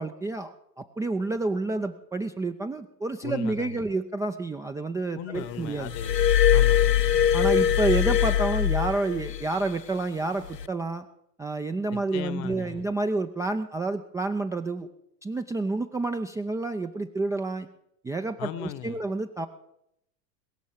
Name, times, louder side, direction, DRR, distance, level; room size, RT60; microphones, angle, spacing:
voice 1, 0.0-5.9 7.3-11.0 11.4-14.9 15.2-17.7 18.0-19.5, right 2 dB, 5° right, 6 dB, 0.5 m, -29 dB
voice 2, 3.2-3.9 5.1-6.1 6.5-7.0 11.9-12.9 18.4-19.0, left 11 dB, 35° left, 16 dB, 1.1 m, -37 dB
Glass, 5.9-9.5 10.4-10.7, left 10 dB, 90° left, 0.6 m, -22 dB
21.5 x 7.2 x 9.3 m, 0.77 s
figure-of-eight pair, 85°, 48 cm